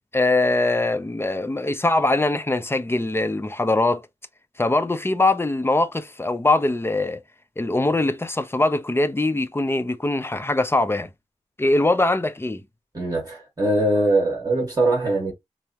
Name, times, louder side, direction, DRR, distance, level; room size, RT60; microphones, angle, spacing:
voice 1, 0.1-4.0 4.6-7.2 7.6-11.1 11.6-12.6, left 2 dB, 20° left, 0.5 m, -22 dB
voice 2, 12.9-15.3, right 2 dB, 35° right, 1.9 m, -22 dB
4.5 x 2.0 x 2.8 m
wide cardioid pair, 85°, 12 cm